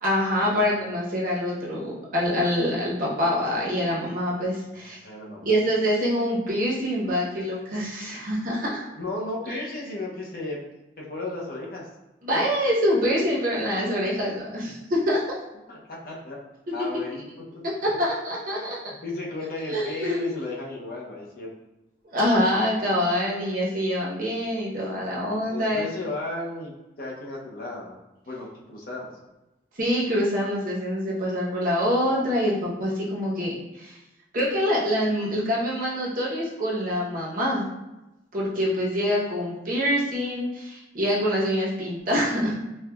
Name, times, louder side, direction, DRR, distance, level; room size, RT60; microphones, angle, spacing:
voice 1, 0.0-5.0 5.4-8.9 12.2-15.4 18.0-18.8 19.7-20.3 22.1-25.8 29.8-34.0 34.3-37.6 38.3-42.5, equal, 50° right, -5 dB, 0.9 m, -25 dB
voice 2, 5.0-5.5 9.0-10.6 11.0-11.9 15.7-16.4 16.7-17.2 19.0-21.5 25.5-26.7 27.0-28.0 28.3-29.1, left 2 dB, 50° left, -3 dB, 0.7 m, -34 dB
4.4 x 2.3 x 2.3 m, 0.98 s
head